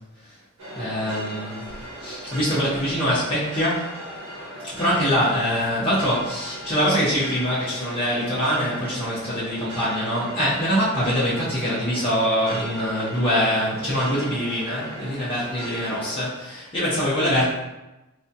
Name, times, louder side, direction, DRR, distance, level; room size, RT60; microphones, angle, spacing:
sound 1, 0.6-16.2, right 1 dB, 70° right, 1.2 m, -38 dB
voice 1, 0.7-1.6 2.0-4.0 4.7-17.5, equal, 25° left, -11 dB, 0.8 m, -24 dB
4.1 x 2.3 x 2.7 m, 1.0 s
head